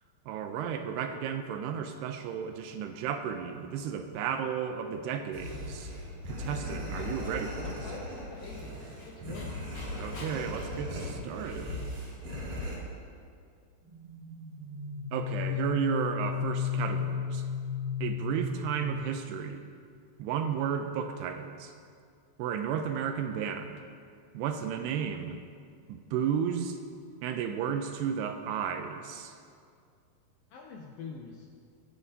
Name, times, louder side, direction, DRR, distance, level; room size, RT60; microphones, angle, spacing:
voice 1, 0.3-5.9 6.3-7.8 9.9-11.9 15.1-17.5 18.0-19.7 20.2-21.7 22.4-23.8 24.3-25.4 25.9-26.8 27.2-29.3, right 8 dB, 80° right, 6 dB, 2.5 m, -33 dB
sound 1, 5.3-12.8, left 1 dB, 40° right, 3.4 m, -38 dB
voice 2, 6.6-9.6 11.7-11.8 30.5-31.5, left 5 dB, 80° left, 0 dB, 2.0 m, -46 dB
Dog, 8.1-11.9, left 2 dB, 50° left, 1.9 m, -51 dB
sound 2, 13.8-19.4, left 7 dB, 20° right, 2.1 m, -34 dB
22.5 x 9.2 x 2.8 m, 2.2 s
omnidirectional pair, 5.0 m